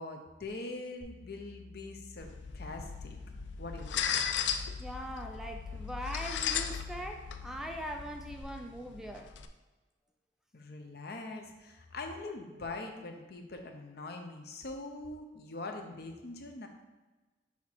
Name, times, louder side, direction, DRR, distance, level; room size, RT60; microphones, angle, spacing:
voice 1, 0.0-3.2 3.6-4.2 10.5-16.7, left 2 dB, 60° left, 4 dB, 0.7 m, -43 dB
sound 1, 1.0-8.4, left 3 dB, 45° right, 1.6 m, -52 dB
sound 2, 2.2-9.5, left 7 dB, 85° left, 0.4 m, -37 dB
voice 2, 4.8-9.3, equal, 5° right, 3 dB, 0.3 m, -41 dB
5.9 x 3.6 x 4.5 m, 1.2 s
head